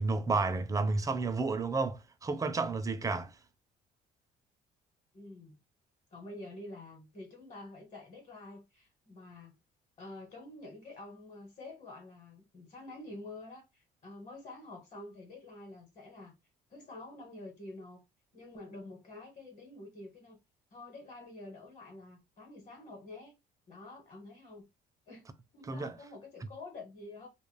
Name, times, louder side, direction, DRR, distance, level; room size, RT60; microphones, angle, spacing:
voice 1, 0.0-3.3 25.7-25.9, right 3 dB, 20° right, 0.4 m, -31 dB
voice 2, 5.1-5.6 6.1-9.5 10.0-16.3 16.7-18.0 18.3-20.4 20.7-23.3 23.7-24.7 25.1-25.3 25.5-27.3, left 2 dB, 40° left, 1.2 m, -48 dB
2.4 x 2.1 x 3.1 m
cardioid pair, 110°, 17 cm